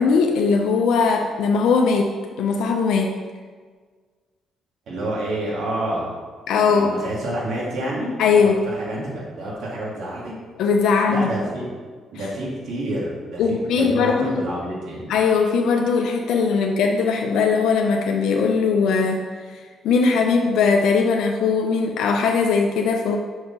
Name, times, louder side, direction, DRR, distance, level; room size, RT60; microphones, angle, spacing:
voice 1, 0.0-2.1 2.4-3.1 6.5-6.9 8.2-8.6 10.6-11.3 13.4-14.4 15.1-19.2 19.5-23.2, left 5 dB, 85° left, 2 dB, 0.7 m, -19 dB
voice 2, 4.9-6.1 6.6-8.1 8.4-8.5 8.8-10.3 11.1-11.7 12.1-15.1, right 1 dB, 65° right, -6 dB, 2.3 m, -28 dB
6.3 x 5.0 x 5.5 m, 1.5 s
cardioid pair, 155°, 0 cm